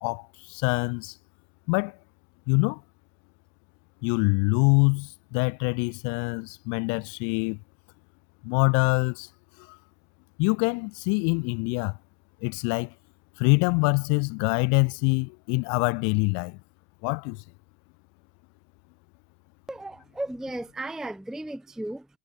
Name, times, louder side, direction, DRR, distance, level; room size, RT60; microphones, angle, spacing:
voice 1, 0.0-1.1 1.7-2.0 2.5-2.8 4.0-7.6 8.4-9.3 9.7-9.8 10.4-12.0 12.4-12.9 13.4-16.6 17.0-17.4, left 37 dB, 65° left, 0.6 m, -25 dB
voice 2, 19.7-22.1, right 1 dB, ahead, 0.5 m, -35 dB
supercardioid pair, 135°, 33 cm